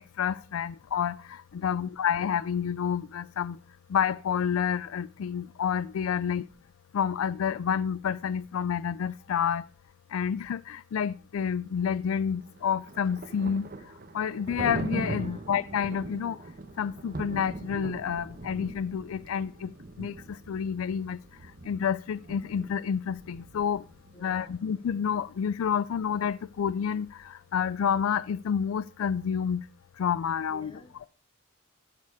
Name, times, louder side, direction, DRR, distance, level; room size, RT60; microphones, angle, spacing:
voice 1, 0.2-3.6 3.9-6.4 6.9-9.6 10.1-13.7 14.1-16.4 16.8-19.7 20.0-21.2 21.6-23.8 24.2-29.6 30.0-30.7, left 7 dB, 85° left, 0.4 m, -29 dB
Thunder, 12.4-24.2, right 2 dB, 45° right, 1.0 m, -40 dB
voice 2, 15.1-15.4 24.1-24.5 30.5-31.1, left 2 dB, 25° left, 1.5 m, -53 dB
11.5 x 6.8 x 4.8 m
head